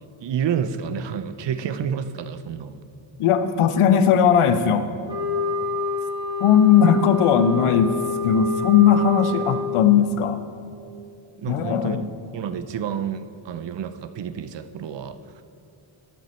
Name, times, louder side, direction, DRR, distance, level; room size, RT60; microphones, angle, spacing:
voice 1, 0.2-2.8 11.4-12.0 12.3-15.4, right 8 dB, 60° right, 11 dB, 0.7 m, -29 dB
voice 2, 3.2-4.9 6.4-8.0 8.2-10.4 11.5-12.0, left 8 dB, 80° left, 10 dB, 0.8 m, -18 dB
sound 1, 5.1-10.0, left 3 dB, 10° right, 1.7 m, -27 dB
12.5 x 9.4 x 4.3 m, 2.6 s
cardioid pair, 105°, 50 cm